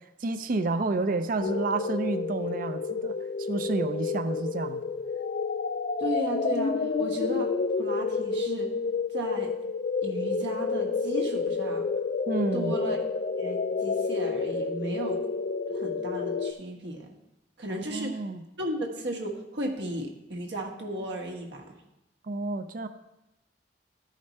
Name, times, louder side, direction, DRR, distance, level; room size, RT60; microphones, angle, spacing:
voice 1, 0.2-3.1 3.5-4.8 12.3-12.7 17.7-18.4 22.2-22.9, right 3 dB, 50° right, 9 dB, 0.5 m, -30 dB
sound 1, 1.4-16.5, left 4 dB, 45° left, 0.4 m, -29 dB
voice 2, 6.0-7.5 7.8-8.7 9.1-9.5 10.0-11.9 12.5-13.0 13.4-15.2 15.7-17.1 17.6-18.2 18.6-21.8, right 1 dB, 75° right, 1 dB, 1.3 m, -35 dB
13.0 x 5.1 x 4.1 m, 0.93 s
head